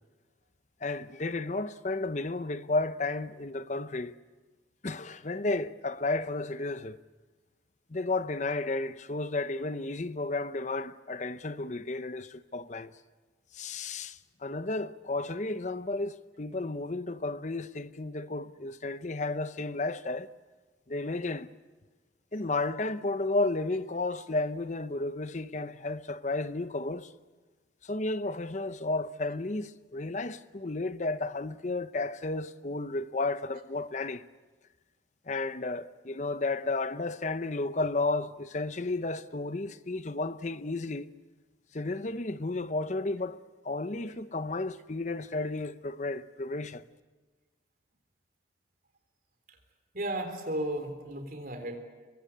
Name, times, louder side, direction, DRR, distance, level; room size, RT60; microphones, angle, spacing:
voice 1, 0.8-4.1 4.8-7.0 7.9-12.9 13.5-20.3 20.9-21.5 22.3-27.1 27.8-34.2 35.3-41.1 41.7-46.8, left 2 dB, 40° left, 0.8 m, -33 dB
voice 2, 49.9-51.8, right 1 dB, 50° right, 3.8 m, -34 dB
24.5 x 23.5 x 8.6 m
head